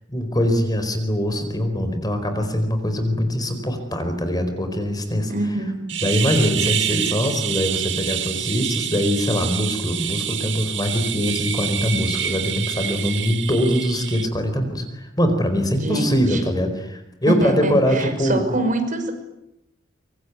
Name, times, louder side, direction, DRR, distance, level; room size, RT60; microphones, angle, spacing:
voice 1, 0.1-5.6 6.0-18.4, equal, 20° left, 7 dB, 4.5 m, -22 dB
voice 2, 5.3-5.7 15.8-16.4 17.3-19.1, right 2 dB, 45° right, 6 dB, 5.7 m, -24 dB
sound 1, 5.9-14.3, right 10 dB, 70° right, 1.8 m, -27 dB
25.0 x 24.0 x 9.6 m, 0.81 s
head